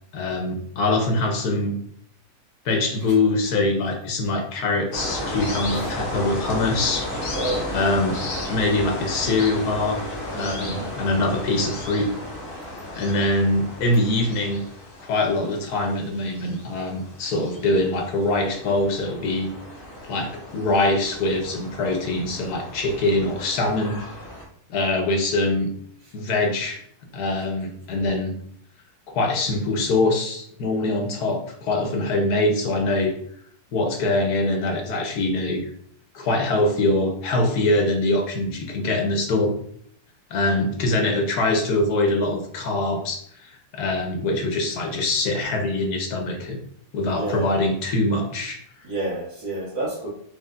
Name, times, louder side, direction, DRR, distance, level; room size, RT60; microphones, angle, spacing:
voice 1, 0.1-1.8 2.6-7.1 7.7-8.2 8.5-10.0 10.3-12.1 13.0-14.6 15.0-19.5 20.0-24.0 24.7-25.7 26.1-26.8 27.1-28.4 29.1-33.1 33.7-35.7 36.1-39.6 40.3-46.6 46.9-48.6, left 2 dB, 85° left, 3 dB, 1.3 m, -23 dB
sound 1, 4.9-24.4, left 1 dB, 40° left, 1.1 m, -34 dB
voice 2, 7.3-7.7 10.3-10.9 47.2-47.6 48.8-50.1, right 1 dB, 90° right, -6 dB, 1.8 m, -30 dB
4.5 x 3.2 x 2.5 m, 0.63 s
omnidirectional pair, 1.6 m